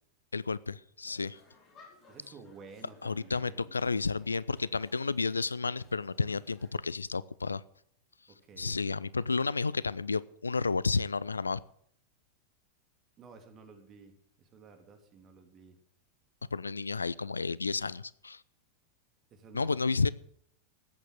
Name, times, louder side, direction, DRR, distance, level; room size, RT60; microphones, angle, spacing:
voice 1, 0.3-1.4 3.0-7.6 8.6-11.6 16.5-18.4 19.5-20.1, left 4 dB, 75° left, 20 dB, 0.4 m, -31 dB
sound 1, 1.0-6.7, left 3 dB, 35° left, 5.2 m, -60 dB
voice 2, 2.1-3.7 8.3-8.8 13.2-15.8 19.3-20.1, right 5 dB, 30° right, 6 dB, 3.0 m, -53 dB
14.0 x 9.1 x 7.8 m, 0.67 s
figure-of-eight pair, 90°, 0 cm